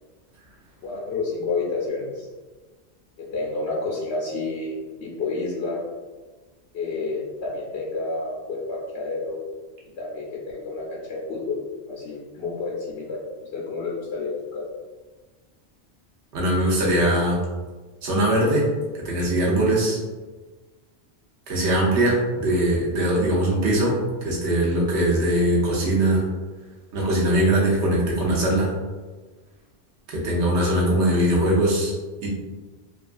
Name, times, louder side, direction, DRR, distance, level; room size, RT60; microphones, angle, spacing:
voice 1, 0.8-2.3 3.2-5.8 6.7-9.4 10.0-11.6 11.9-14.7, left 3 dB, 80° left, -5 dB, 0.9 m, -30 dB
voice 2, 16.3-17.4 18.0-18.7 19.0-20.0 21.5-24.0 24.2-26.3 26.9-28.7 30.1-31.9 32.2-32.3, right 1 dB, 85° right, -4 dB, 1.0 m, -21 dB
2.7 x 2.3 x 2.5 m, 1.3 s
omnidirectional pair, 1.1 m